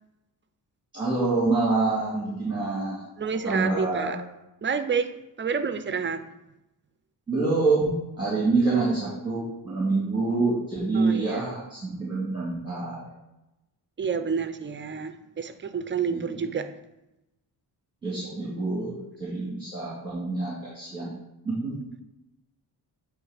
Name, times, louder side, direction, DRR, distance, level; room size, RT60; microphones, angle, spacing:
voice 1, 0.9-3.0 3.4-4.2 7.3-13.1 16.1-16.2 18.0-21.1 21.4-21.7, right 3 dB, 10° right, -6 dB, 1.8 m, -26 dB
voice 2, 3.2-4.2 4.6-5.1 5.4-6.2 8.6-8.9 10.9-11.4 14.0-16.7, right 6 dB, 30° right, 10 dB, 0.5 m, -29 dB
8.0 x 3.3 x 4.9 m, 0.94 s
cardioid pair, 120°, 42 cm